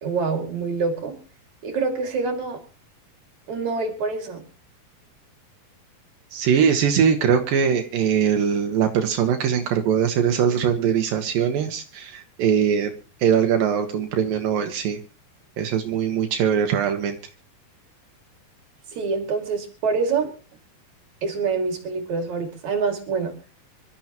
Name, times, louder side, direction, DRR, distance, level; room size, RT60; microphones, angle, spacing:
voice 1, 0.0-1.2 1.6-2.6 3.5-4.4 18.9-20.3 21.2-23.3, right 4 dB, 55° right, 4 dB, 3.6 m, -26 dB
voice 2, 6.3-12.9 13.2-15.0 15.6-17.2, right 8 dB, 75° right, 5 dB, 2.9 m, -21 dB
26.0 x 13.0 x 3.0 m, 0.35 s
omnidirectional pair, 4.1 m